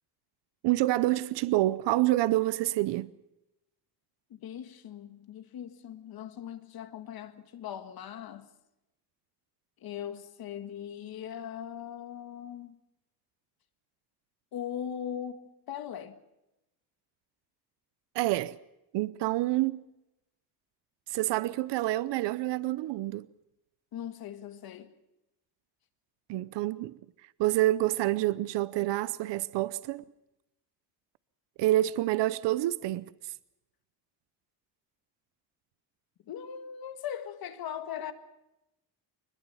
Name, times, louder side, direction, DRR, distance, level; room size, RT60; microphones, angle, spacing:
voice 1, 0.6-3.1 18.1-18.6 18.9-19.8 21.1-23.3 26.3-27.0 27.4-30.0 31.6-33.0, right 16 dB, 90° right, 0.7 m, -27 dB
voice 2, 4.3-8.5 9.8-12.8 14.5-16.2 23.9-24.9 36.3-38.1, left 9 dB, 60° left, 1.8 m, -40 dB
24.5 x 21.0 x 5.6 m
cardioid pair, 155°, 41 cm